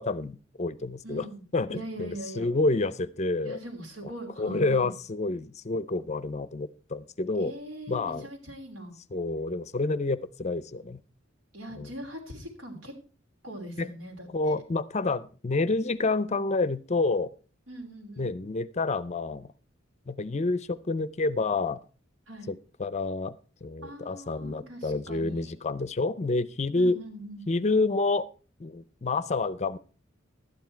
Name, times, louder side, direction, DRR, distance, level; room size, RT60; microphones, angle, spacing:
voice 1, 0.0-1.3 1.5-3.6 4.4-7.5 7.9-8.3 9.1-11.0 11.8-11.9 13.8-13.9 14.3-17.3 18.2-19.5 20.1-21.8 22.5-23.4 23.6-27.0 27.5-28.3 28.6-29.8, left 3 dB, 35° left, 16 dB, 0.5 m, -28 dB
voice 2, 1.0-1.4 1.7-2.5 3.4-4.9 7.4-9.0 11.5-12.9 13.4-14.6 17.7-18.3 22.3-22.5 23.8-25.5 26.7-27.5, right 1 dB, 80° right, 3 dB, 3.0 m, -41 dB
12.0 x 9.5 x 4.5 m, 0.37 s
head